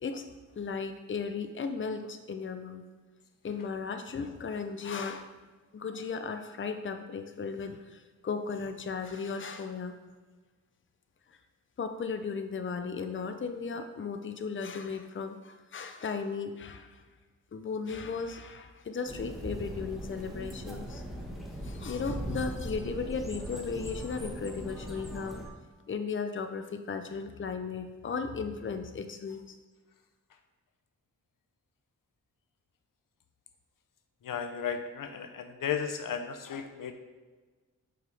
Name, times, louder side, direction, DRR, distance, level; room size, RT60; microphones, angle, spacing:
voice 1, 0.5-2.9 3.4-5.3 5.7-10.0 11.3-11.4 11.8-17.0 17.5-21.0 21.6-25.5 25.9-29.6, left 5 dB, 40° left, 7 dB, 0.6 m, -36 dB
sound 1, 19.1-25.5, equal, ahead, 1.3 m, -39 dB
voice 2, 34.2-36.9, left 7 dB, 85° left, 7 dB, 0.7 m, -34 dB
7.8 x 5.4 x 3.4 m, 1.3 s
wide cardioid pair, 80°, 32 cm